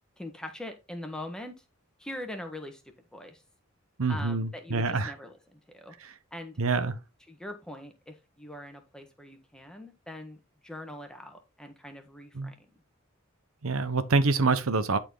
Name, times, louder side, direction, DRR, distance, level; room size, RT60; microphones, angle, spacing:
voice 1, 0.2-1.6 2.0-2.8 3.1-3.4 4.1-6.0 6.3-6.6 7.3-12.7, left 1 dB, 5° left, 1.4 m, -42 dB
voice 2, 4.0-5.1 6.6-7.0 12.3-12.5 13.6-15.0, right 3 dB, 90° right, 0.9 m, -26 dB
11.0 x 4.4 x 3.9 m
head